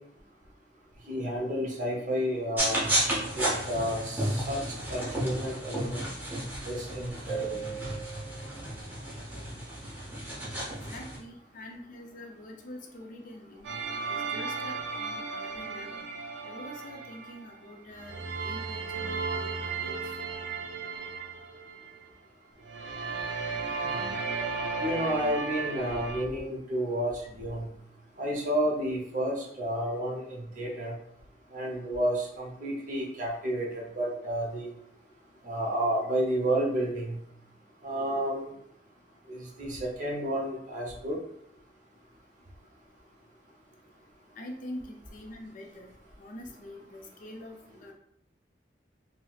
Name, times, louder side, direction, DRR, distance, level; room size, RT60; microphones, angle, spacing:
voice 1, 1.1-2.8 3.3-4.6 4.9-6.0 6.6-7.6 23.8-24.1 24.8-27.7 28.2-31.0 31.5-34.7 35.4-37.2 37.8-38.5 39.3-41.2, right 1 dB, 45° right, -2 dB, 0.8 m, -31 dB
sound 1, 2.6-11.2, right 1 dB, 10° right, 0.8 m, -32 dB
sound 2, 7.3-8.8, right 8 dB, 30° right, 1.2 m, -38 dB
voice 2, 10.8-13.7 14.1-16.1 16.4-18.1 18.4-20.5 44.4-45.9 46.2-47.9, left 1 dB, 50° left, 2 dB, 0.4 m, -45 dB
sound 3, 13.6-17.6 17.9-22.0 22.6-26.2, right 4 dB, 90° right, 0.5 m, -35 dB
4.0 x 2.0 x 2.4 m, 0.71 s
head